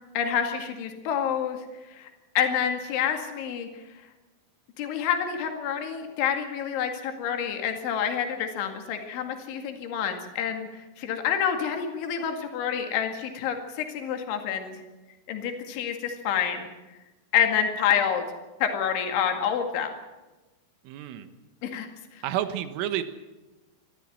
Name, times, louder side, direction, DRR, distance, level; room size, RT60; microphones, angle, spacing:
voice 1, 0.1-1.6 1.9-2.1 2.4-3.8 4.8-14.8 15.3-16.7 17.3-18.3 18.6-19.9 21.6-22.2, left 8 dB, 75° left, 5 dB, 4.5 m, -28 dB
voice 2, 20.9-21.3 22.2-23.0, right 11 dB, 85° right, 10 dB, 3.8 m, -30 dB
22.0 x 14.0 x 9.2 m, 1.1 s
omnidirectional pair, 5.6 m